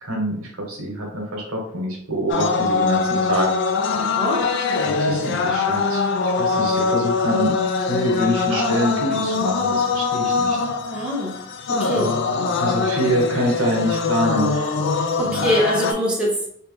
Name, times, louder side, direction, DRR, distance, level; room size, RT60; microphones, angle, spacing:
voice 1, 0.0-3.6 4.8-7.6 7.9-10.6 12.6-14.8 15.2-15.5, equal, 85° right, -1 dB, 1.3 m, -25 dB
sound 1, 2.3-15.9, left 4 dB, 55° left, 0.4 m, -22 dB
voice 2, 4.0-4.4 10.9-11.3 11.7-12.1 15.2-16.5, equal, 5° right, -5 dB, 0.8 m, -23 dB
3.1 x 2.9 x 3.3 m, 0.65 s
head